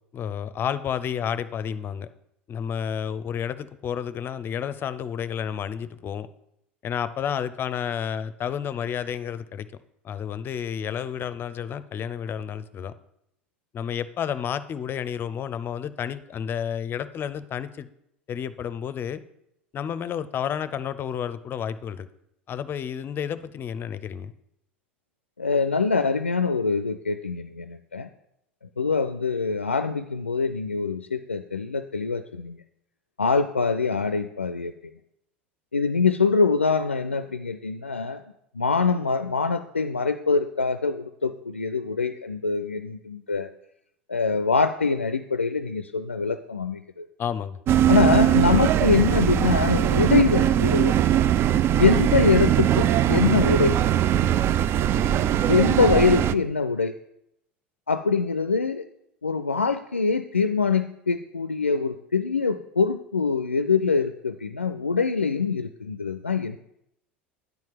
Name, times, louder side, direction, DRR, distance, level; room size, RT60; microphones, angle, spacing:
voice 1, 0.1-2.1 2.5-6.3 6.8-9.7 10.0-12.9 13.7-17.9 18.3-19.2 19.7-22.1 22.5-24.3 47.2-47.6, left 8 dB, 35° left, 14 dB, 0.6 m, -31 dB
voice 2, 25.4-28.1 28.8-32.6 33.2-34.7 35.7-38.2 38.5-43.5 44.1-47.1 47.9-51.0 51.8-53.7 55.5-56.9 57.9-58.9 59.2-66.6, left 4 dB, 90° left, 11 dB, 0.4 m, -24 dB
sound 1, 47.7-56.3, right 11 dB, 40° right, 0.4 m, -21 dB
9.5 x 4.5 x 7.3 m, 0.79 s
figure-of-eight pair, 75°, 6 cm